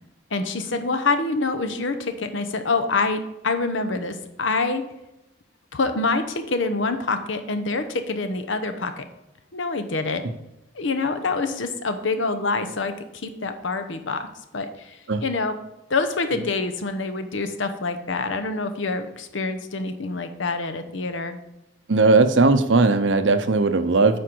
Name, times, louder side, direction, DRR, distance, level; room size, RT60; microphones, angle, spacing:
voice 1, 0.3-4.8 5.7-9.0 9.5-10.2 10.7-14.3 14.5-15.5 15.9-21.4, left 3 dB, 80° left, 8 dB, 0.8 m, -26 dB
voice 2, 21.9-24.2, right 3 dB, 75° right, 10 dB, 0.7 m, -18 dB
9.0 x 5.2 x 4.5 m, 0.92 s
head